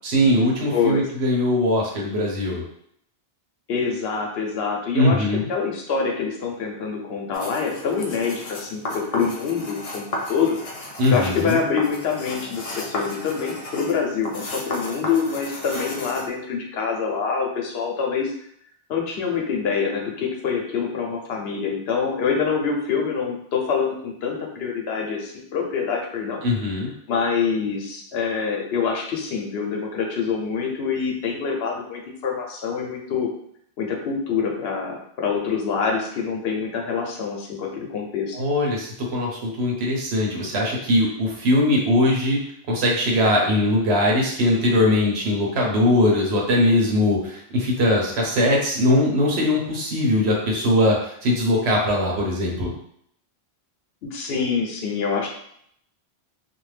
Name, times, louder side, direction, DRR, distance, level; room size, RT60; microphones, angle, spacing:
voice 1, 0.0-2.6 4.9-5.5 11.0-11.6 26.4-26.9 38.3-42.4 42.7-52.7, left 1 dB, 80° right, -2 dB, 1.0 m, -21 dB
voice 2, 0.7-1.0 3.7-10.6 11.1-18.3 18.9-26.4 27.1-33.3 33.8-38.4 54.0-55.3, left 6 dB, 75° left, 0 dB, 0.9 m, -25 dB
sound 1, 7.3-16.3, left 1 dB, 45° left, 0.5 m, -34 dB
2.5 x 2.1 x 3.2 m, 0.69 s
omnidirectional pair, 1.1 m